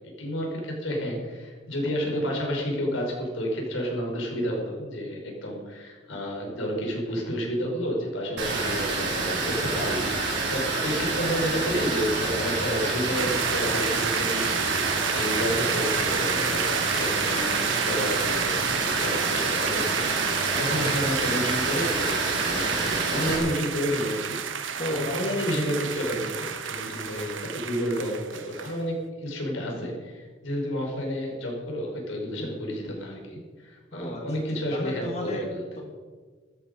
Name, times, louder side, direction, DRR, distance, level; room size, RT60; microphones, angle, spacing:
voice 1, 0.2-35.6, equal, 90° left, 0 dB, 5.2 m, -31 dB
Water, 8.4-23.4, right 3 dB, 70° right, 4.4 m, -28 dB
sound 1, 13.1-28.8, right 7 dB, 85° right, 1.2 m, -31 dB
voice 2, 24.8-25.2 33.9-34.2 34.7-35.5 35.8-35.9, left 1 dB, 35° left, 0 dB, 2.0 m, -32 dB
15.5 x 13.5 x 5.3 m, 1.5 s
head